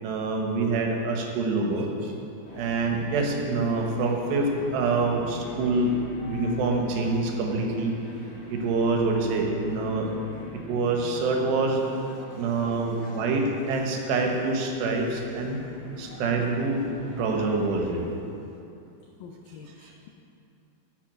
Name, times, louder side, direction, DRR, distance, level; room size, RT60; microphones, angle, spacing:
voice 1, 0.0-2.1 2.5-5.9 6.2-8.0 8.5-10.1 10.5-11.8 12.3-15.6 16.0-16.9 17.2-18.1, right 3 dB, 75° right, 2 dB, 3.3 m, -26 dB
sound 1, 2.4-18.0, left 2 dB, 65° left, 4.0 m, -43 dB
voice 2, 5.4-5.8 6.2-6.8 9.5-9.6 12.1-13.4 15.7-16.5 17.2-17.8 19.2-20.1, left 6 dB, 85° left, 2 dB, 2.0 m, -49 dB
12.0 x 8.3 x 6.3 m, 2.7 s
omnidirectional pair, 5.0 m